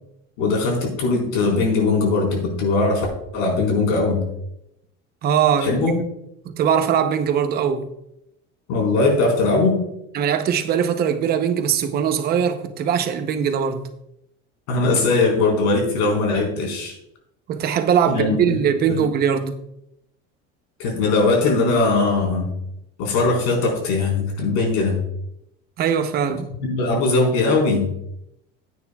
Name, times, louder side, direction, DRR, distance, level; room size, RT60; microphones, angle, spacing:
voice 1, 0.4-3.1 3.3-4.3 5.6-5.9 8.7-9.8 14.7-16.9 18.1-18.6 18.9-19.0 20.8-22.5 23.0-25.0 26.6-27.9, left 3 dB, 90° left, 4.4 m, -20 dB
voice 2, 5.2-5.9 6.5-7.9 10.1-13.9 17.5-19.6 25.8-26.5, right 8 dB, 30° right, 0.7 m, -21 dB
15.5 x 9.3 x 2.3 m
cardioid pair, 175°, 30 cm